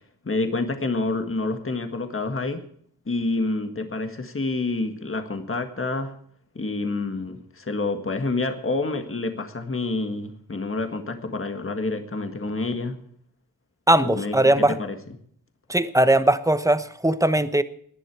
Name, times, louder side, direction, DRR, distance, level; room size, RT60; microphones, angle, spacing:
voice 1, 0.2-2.6 3.1-6.1 6.5-13.0 14.0-15.0, left 3 dB, 35° left, 7 dB, 1.7 m, -28 dB
voice 2, 13.9-14.7 15.7-17.6, right 1 dB, 10° right, 12 dB, 1.0 m, -19 dB
18.0 x 11.0 x 4.8 m, 0.63 s
wide cardioid pair, 105°, 36 cm